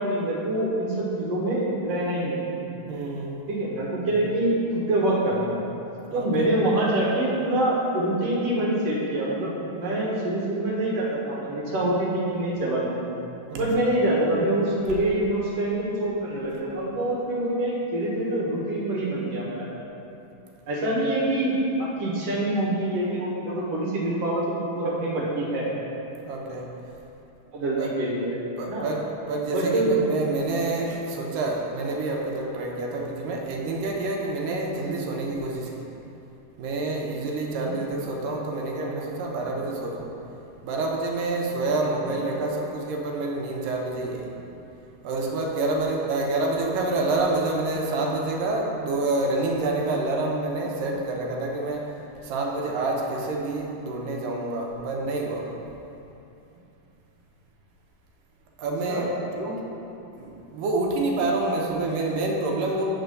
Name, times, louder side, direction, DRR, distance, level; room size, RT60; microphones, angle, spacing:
voice 1, 0.0-2.5 3.5-5.6 6.1-13.0 13.6-19.7 20.7-24.4 24.8-25.7 27.5-28.9 29.5-30.0 37.6-37.8 42.0-42.1 58.9-59.1 59.4-59.5, right 1 dB, 60° right, -5 dB, 1.9 m, -25 dB
voice 2, 2.9-3.4 6.1-6.5 13.5-13.8 26.2-26.7 27.8-27.9 28.6-35.9 36.6-40.1 40.6-44.3 45.0-51.9 52.2-55.5 58.6-59.1 60.2-62.8, right 2 dB, 80° right, 0 dB, 2.4 m, -28 dB
8.1 x 4.2 x 6.8 m, 2.8 s
omnidirectional pair, 3.9 m